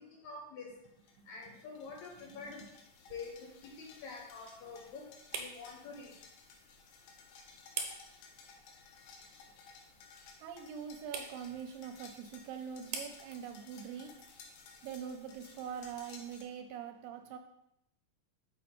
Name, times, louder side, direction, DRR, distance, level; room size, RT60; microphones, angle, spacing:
voice 1, 0.1-0.7 1.3-2.6 3.1-3.3 3.6-5.1 5.4-6.1, left 4 dB, 70° left, 0 dB, 2.0 m, -46 dB
sound 1, 0.8-16.4, left 5 dB, 90° left, 2.6 m, -57 dB
voice 2, 1.2-1.6 2.3-2.4 10.4-14.1 14.8-17.4, right 8 dB, 85° right, 5 dB, 2.3 m, -44 dB
sound 2, 1.8-16.6, right 5 dB, 70° right, 2.3 m, -50 dB
6.1 x 5.6 x 4.3 m, 0.80 s
omnidirectional pair, 3.9 m